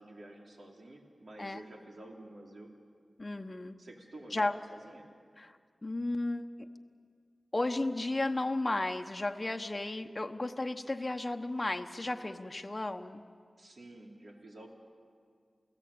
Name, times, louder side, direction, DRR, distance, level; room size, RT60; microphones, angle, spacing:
voice 1, 0.0-2.7 3.8-5.1 13.6-14.7, right 1 dB, 70° right, 0 dB, 3.7 m, -50 dB
voice 2, 3.2-3.8 4.3-4.5 5.4-5.6 5.8-6.7 7.5-13.2, left 2 dB, 30° left, 5 dB, 1.1 m, -34 dB
29.0 x 17.5 x 8.8 m, 2.1 s
wide cardioid pair, 65°, 0 cm